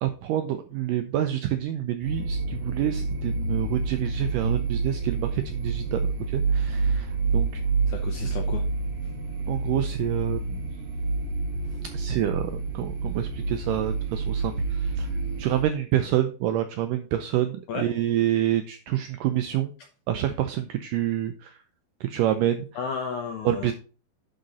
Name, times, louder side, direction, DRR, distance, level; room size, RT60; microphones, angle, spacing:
voice 1, 0.0-7.6 9.5-10.7 11.9-15.1 15.4-19.7 20.1-21.5 22.0-22.7 23.5-23.7, right 12 dB, 85° right, 8 dB, 1.9 m, -27 dB
sound 1, 2.0-15.6, right 4 dB, 50° right, 4.9 m, -28 dB
voice 2, 7.9-8.6 17.7-17.9 22.8-23.7, left 6 dB, 75° left, 5 dB, 1.8 m, -33 dB
10.5 x 5.0 x 4.1 m, 0.36 s
omnidirectional pair, 4.5 m